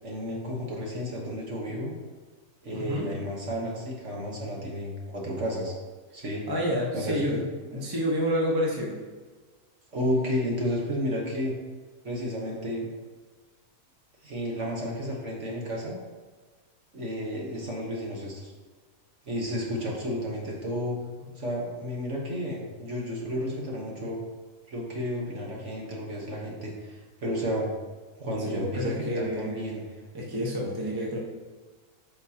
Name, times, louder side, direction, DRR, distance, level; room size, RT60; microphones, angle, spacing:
voice 1, 0.0-1.9 2.6-5.7 6.1-6.5 6.9-7.4 7.7-7.8 9.9-11.5 12.0-12.9 14.2-16.0 16.9-18.5 19.2-24.2 24.7-27.7 28.2-29.8, equal, 50° right, -2 dB, 1.6 m, -32 dB
voice 2, 2.7-3.1 6.5-9.0 28.5-29.6 30.1-31.2, equal, 15° right, -3 dB, 1.1 m, -29 dB
8.5 x 5.9 x 2.9 m, 1.4 s
omnidirectional pair, 1.6 m